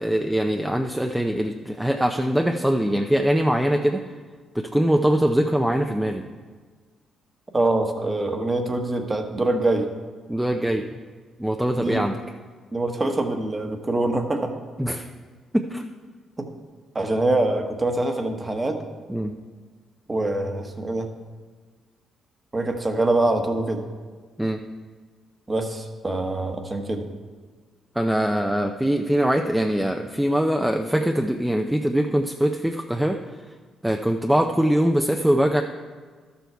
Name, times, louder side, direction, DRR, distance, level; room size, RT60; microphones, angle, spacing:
voice 1, 0.0-4.0 4.5-6.2 10.3-11.0 11.4-12.2 14.8-15.1 15.5-15.8 19.1-19.3 24.4-24.6 28.0-33.2 33.8-35.6, right 1 dB, 5° right, 4 dB, 0.5 m, -22 dB
voice 2, 7.5-9.9 11.7-12.0 12.7-14.5 16.4-16.5 16.9-18.8 20.1-21.1 22.5-23.8 25.5-27.1, right 2 dB, 25° right, 5 dB, 1.2 m, -24 dB
12.5 x 7.0 x 4.6 m, 1.5 s
cardioid pair, 90°, 0 cm